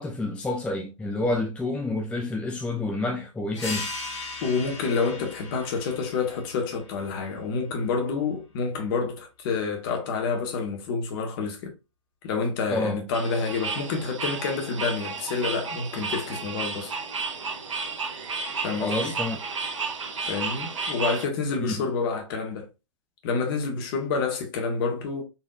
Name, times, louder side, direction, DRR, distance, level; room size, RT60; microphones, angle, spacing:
voice 1, 0.0-3.9 12.7-13.0 18.8-19.4 21.6-21.8, left 2 dB, 5° left, 0.5 m, -29 dB
sound 1, 3.5-8.7, left 3 dB, 65° left, 1.8 m, -39 dB
voice 2, 4.4-11.7 12.2-16.9 18.6-19.1 20.2-22.7 23.2-25.2, left 4 dB, 45° left, 1.6 m, -28 dB
sound 2, 13.1-21.2, right 4 dB, 70° right, 1.2 m, -32 dB
4.2 x 3.5 x 2.6 m
hypercardioid pair, 115°, 16 cm